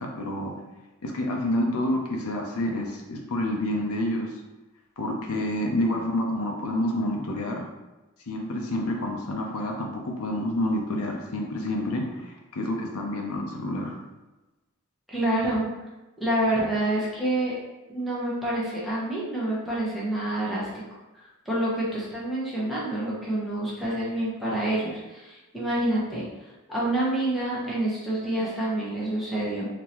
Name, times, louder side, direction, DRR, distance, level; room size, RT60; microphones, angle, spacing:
voice 1, 0.2-0.5 1.0-4.3 5.0-7.6 8.3-14.0, left 1 dB, 85° left, 1 dB, 0.6 m, -28 dB
voice 2, 15.1-15.7 16.2-17.5 17.9-20.7 21.4-26.3 26.7-29.7, right 1 dB, ahead, -8 dB, 1.0 m, -27 dB
3.7 x 2.8 x 3.0 m, 1.1 s
head